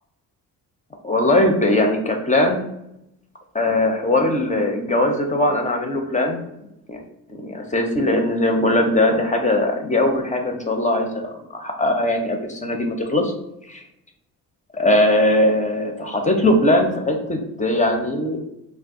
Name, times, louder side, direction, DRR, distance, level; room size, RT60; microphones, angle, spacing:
voice 1, 1.0-2.6 3.5-6.4 6.9-7.0 7.3-13.3 13.7-13.8 14.7-18.4, left 1 dB, 20° left, 3 dB, 0.4 m, -20 dB
2.4 x 2.2 x 3.5 m, 0.82 s
supercardioid pair, 60°, 41 cm